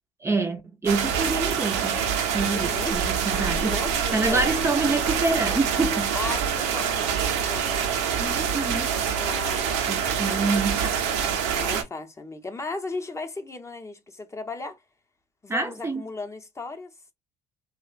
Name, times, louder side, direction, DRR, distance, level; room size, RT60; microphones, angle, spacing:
voice 1, 0.2-2.1 2.3-3.8 4.1-6.1 8.2-8.9 9.9-11.3 15.5-16.0, right 3 dB, 15° right, 0.5 m, -27 dB
sound 1, 0.9-11.8, right 7 dB, 80° right, 0.6 m, -26 dB
voice 2, 2.5-3.0 3.6-5.1 6.1-7.9 9.1-9.7 11.5-14.8 15.4-16.9, left 3 dB, 20° left, 0.7 m, -36 dB
2.8 x 2.1 x 2.4 m
hypercardioid pair, 75°, 15 cm